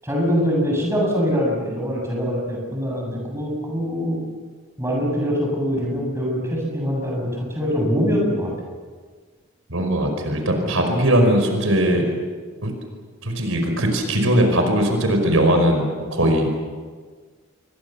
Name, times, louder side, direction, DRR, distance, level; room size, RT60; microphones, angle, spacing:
voice 1, 0.0-4.3 4.8-8.5 10.6-10.8 16.2-16.3, equal, 15° right, -1 dB, 7.5 m, -23 dB
voice 2, 9.7-12.1 12.6-12.7 13.2-16.5, right 1 dB, 75° right, 4 dB, 5.2 m, -19 dB
27.5 x 23.0 x 7.1 m, 1.5 s
head